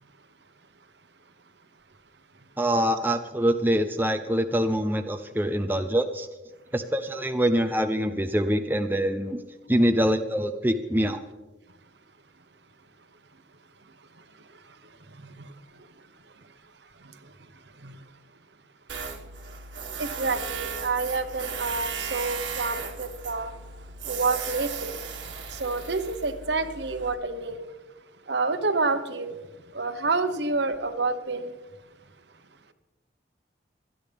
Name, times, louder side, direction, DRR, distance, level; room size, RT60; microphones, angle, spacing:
voice 1, 2.6-6.3 6.7-9.4 9.7-11.2, equal, 10° right, 7 dB, 0.5 m, -24 dB
Tools, 18.9-27.1, right 6 dB, 90° right, 1.8 m, -36 dB
voice 2, 20.0-23.5 24.0-24.9 25.5-27.6 28.3-29.4 29.7-31.5, right 3 dB, 65° right, 9 dB, 1.1 m, -28 dB
25.5 x 10.0 x 3.5 m, 1.2 s
head